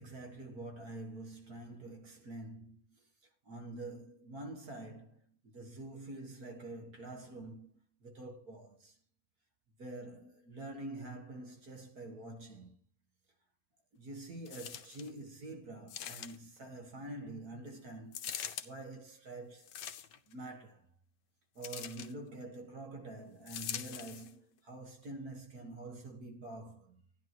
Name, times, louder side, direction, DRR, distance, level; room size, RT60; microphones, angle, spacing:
voice 1, 0.0-3.1 3.5-7.7 8.0-9.0 9.8-12.8 13.9-18.3 18.6-19.8 20.3-20.9 21.6-27.0, right 2 dB, 60° right, 2.2 m, -46 dB
sound 1, 14.5-15.1 15.9-16.6 18.1-18.7 19.6-20.3 21.6-22.1 23.5-24.3 25.0-25.1, left 10 dB, 85° left, 1.4 m, -43 dB
13.5 x 10.5 x 3.0 m
omnidirectional pair, 1.9 m